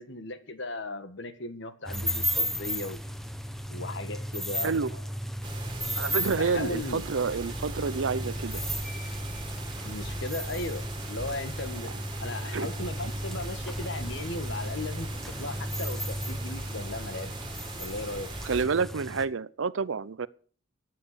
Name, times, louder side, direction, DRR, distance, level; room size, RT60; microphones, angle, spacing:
voice 1, 0.0-3.0 3.7-5.1 6.4-7.1 9.8-11.9 12.2-15.1 15.4-17.4 17.8-18.3, left 2 dB, 65° left, 1.7 m, -37 dB
sound 1, 1.9-19.3, equal, ahead, 1.3 m, -35 dB
sound 2, 5.4-18.6, right 2 dB, 25° right, 2.6 m, -41 dB
voice 2, 6.0-8.6 12.4-12.7 18.4-20.3, right 5 dB, 80° right, 0.6 m, -29 dB
15.5 x 9.5 x 6.9 m
head